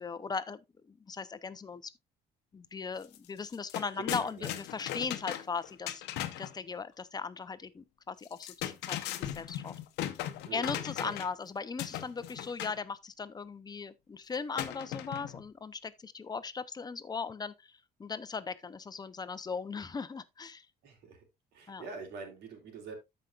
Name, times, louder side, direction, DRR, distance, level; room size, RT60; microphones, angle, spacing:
voice 1, 0.0-1.9 2.5-6.0 6.4-9.7 10.5-20.7 21.7-21.8, left 5 dB, 25° left, 0.7 m, -38 dB
sound 1, 3.0-3.2 3.4-6.6 8.2-11.4 11.8-12.8 14.6-15.5, left 12 dB, 90° left, 0.8 m, -38 dB
voice 2, 3.9-4.6 10.4-11.1 20.8-21.2 21.5-22.9, right 5 dB, 80° right, 3.2 m, -45 dB
13.5 x 5.2 x 2.4 m
cardioid pair, 110°, 17 cm